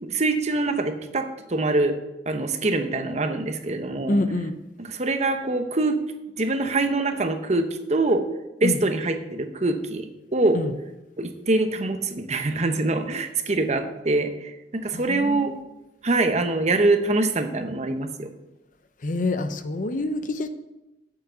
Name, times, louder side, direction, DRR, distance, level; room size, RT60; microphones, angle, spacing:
voice 1, 0.0-2.0 2.3-4.1 4.8-6.0 6.4-8.2 8.6-10.6 11.2-15.5 16.0-18.3, right 2 dB, 40° right, 7 dB, 0.9 m, -24 dB
voice 2, 4.1-4.6 8.6-8.8 10.5-10.7 14.9-15.5 19.0-20.5, left 2 dB, 45° left, 10 dB, 0.7 m, -26 dB
8.5 x 7.9 x 6.7 m, 0.99 s
head